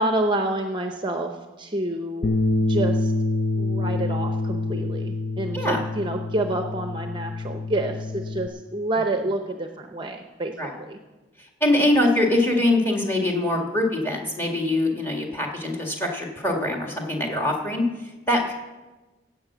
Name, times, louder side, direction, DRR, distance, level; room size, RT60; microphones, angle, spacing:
voice 1, 0.0-2.4 2.7-3.1 3.6-10.5 10.8-11.0, right 1 dB, 25° right, 5 dB, 0.7 m, -28 dB
Bass guitar, 2.2-8.5, left 2 dB, 50° left, 0.5 m, -26 dB
voice 2, 11.4-18.5, left 1 dB, 10° left, 1 dB, 1.9 m, -23 dB
15.5 x 8.3 x 6.1 m, 1.2 s
head